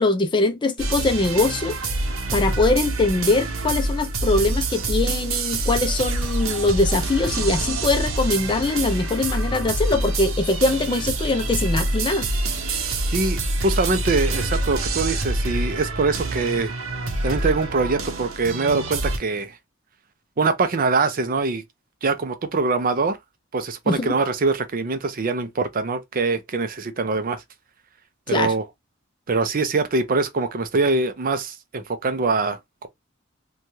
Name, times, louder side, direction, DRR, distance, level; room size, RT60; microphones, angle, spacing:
voice 1, 0.0-1.7 2.3-12.3 23.9-24.2 28.3-28.5, left 2 dB, 25° left, 0.4 m, -22 dB
sound 1, 0.8-19.2, right 2 dB, 80° right, 0.7 m, -26 dB
voice 2, 13.1-16.7 17.2-19.6 20.4-21.6 22.0-23.2 23.5-27.4 28.3-28.7 29.3-32.9, right 3 dB, 45° right, 0.5 m, -23 dB
3.1 x 2.3 x 2.7 m
head